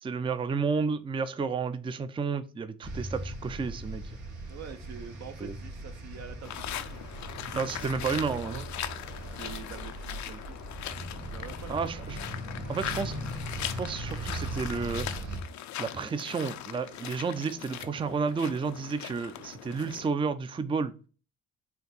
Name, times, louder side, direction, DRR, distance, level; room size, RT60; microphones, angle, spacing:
voice 1, 0.0-4.0 5.4-5.5 7.5-8.6 11.7-12.2 12.7-13.1 13.6-15.1 15.8-20.9, right 5 dB, 15° right, 0.4 m, -31 dB
sound 1, 2.8-15.4, right 1 dB, 90° right, 1.5 m, -39 dB
voice 2, 4.5-7.0 7.4-8.7 9.3-10.6 11.3-12.1, right 7 dB, 60° right, 0.7 m, -45 dB
sound 2, 6.4-20.1, left 11 dB, 70° left, 0.5 m, -40 dB
4.5 x 2.6 x 3.9 m
cardioid pair, 90°, 30 cm